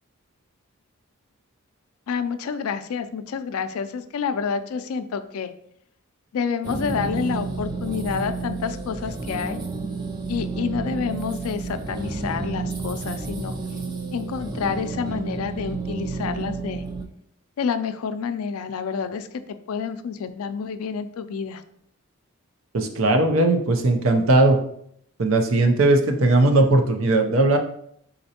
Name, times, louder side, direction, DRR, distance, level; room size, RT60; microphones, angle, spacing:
voice 1, 2.1-5.5 6.3-9.6 10.3-13.5 14.1-16.8 17.6-21.6, left 6 dB, 85° left, 10 dB, 0.4 m, -28 dB
sound 1, 6.6-17.0, right 4 dB, 20° right, 0.3 m, -31 dB
voice 2, 22.7-24.6 25.2-27.6, right 2 dB, 65° right, 5 dB, 0.6 m, -18 dB
4.2 x 3.8 x 2.8 m, 0.71 s
head